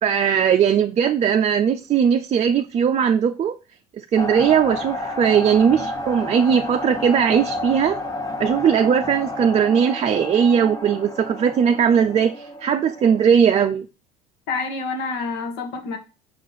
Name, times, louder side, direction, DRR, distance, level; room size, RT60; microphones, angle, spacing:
voice 1, 0.0-3.6 4.0-8.0 8.4-13.9, right 7 dB, 35° right, 0.5 m, -19 dB
sound 1, 4.2-13.2, left 1 dB, 20° left, 1.0 m, -31 dB
voice 2, 14.5-16.0, left 4 dB, 70° left, 1.5 m, -27 dB
6.2 x 3.8 x 4.0 m
hypercardioid pair, 80°, 18 cm